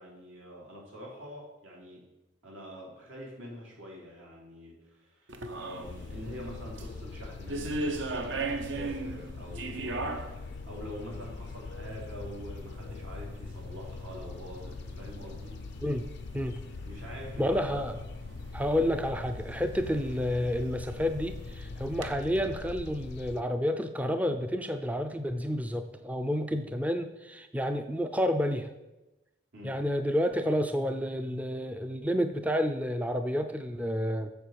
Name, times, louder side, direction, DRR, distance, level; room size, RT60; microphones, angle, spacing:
voice 1, 0.0-2.0 2.4-10.1 10.5-15.5 16.8-17.8 29.5-29.8, equal, 80° right, -4 dB, 3.9 m, -45 dB
sound 1, 5.3-22.1, right 2 dB, 65° right, 0.9 m, -41 dB
sound 2, 5.8-23.4, left 3 dB, 60° left, 0.4 m, -42 dB
voice 2, 17.4-17.9 18.5-28.7 29.6-34.3, equal, 5° right, 7 dB, 0.4 m, -30 dB
7.8 x 6.8 x 6.8 m, 1.0 s
head